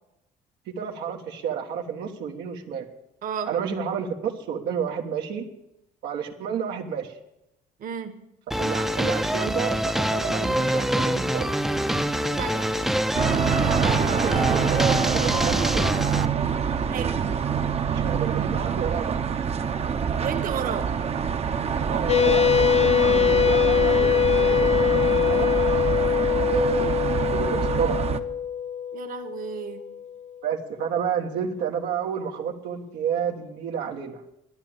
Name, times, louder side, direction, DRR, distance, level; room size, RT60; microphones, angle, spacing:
voice 1, 0.7-2.8 3.5-5.5 6.0-7.1 8.6-11.5 13.6-15.9 17.9-19.2 21.8-25.5 26.5-27.0 27.3-28.1 30.4-34.2, right 7 dB, 80° right, 2 dB, 1.4 m, -30 dB
voice 2, 3.2-3.5 7.8-8.2 12.4-12.7 16.9-17.2 20.2-21.0 28.9-29.8, right 7 dB, 55° right, 7 dB, 1.5 m, -32 dB
sound 1, 8.5-16.3, equal, ahead, 0.6 m, -25 dB
sound 2, 13.1-28.2, right 7 dB, 40° right, 0.9 m, -25 dB
sound 3, 22.1-30.1, left 8 dB, 40° left, 0.7 m, -23 dB
12.0 x 10.0 x 8.6 m, 0.87 s
cardioid pair, 110°, 17 cm